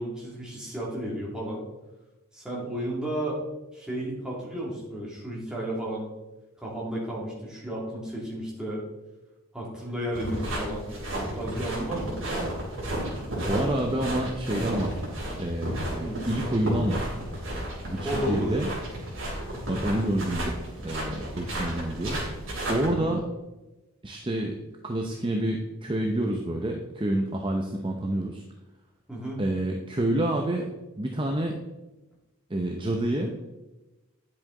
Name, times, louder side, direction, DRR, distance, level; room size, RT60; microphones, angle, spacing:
voice 1, 0.0-1.6 2.3-3.4 3.7-6.1 6.6-8.8 9.5-10.8 11.2-12.1 16.0-16.2 18.0-18.5 22.9-23.2 29.1-29.4, right 1 dB, 5° right, -5 dB, 2.3 m, -33 dB
sound 1, 10.1-22.9, right 1 dB, 60° right, 3.5 m, -33 dB
voice 2, 13.4-15.0 15.4-17.1 17.9-18.7 19.7-20.5 20.8-22.2 22.7-23.2 24.0-24.6 24.8-28.4 29.4-30.7 31.0-31.5 32.5-33.3, right 1 dB, 20° right, 2 dB, 0.7 m, -28 dB
9.7 x 7.7 x 3.8 m, 1.1 s
head